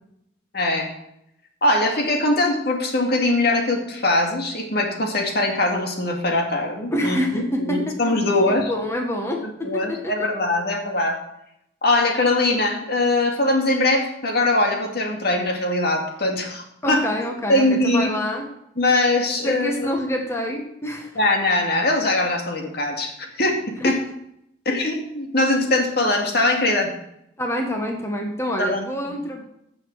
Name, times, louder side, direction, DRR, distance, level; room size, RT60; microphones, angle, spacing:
voice 1, 0.5-0.9 1.6-8.7 9.4-11.2 11.8-17.1 17.5-18.1 18.8-19.9 21.2-23.9 24.7-26.9 28.6-28.8 29.0-29.1, left 2 dB, 60° left, 2 dB, 2.2 m, -21 dB
voice 2, 6.9-7.8 8.5-10.3 16.8-18.5 19.4-21.1 23.8-23.9 27.4-29.4, left 1 dB, 15° left, 2 dB, 1.3 m, -26 dB
15.5 x 6.6 x 4.7 m, 0.79 s
head